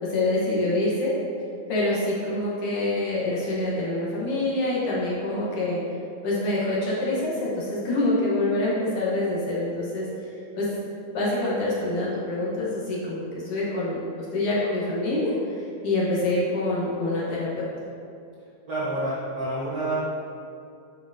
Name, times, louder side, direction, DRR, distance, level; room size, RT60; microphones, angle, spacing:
voice 1, 0.0-1.2 1.7-5.8 6.2-10.1 10.6-10.7 11.1-14.0 14.3-17.7, left 2 dB, 60° left, -6 dB, 1.9 m, -26 dB
voice 2, 18.7-19.9, right 1 dB, 75° right, -8 dB, 0.9 m, -28 dB
7.8 x 5.6 x 2.7 m, 2.5 s
omnidirectional pair, 3.3 m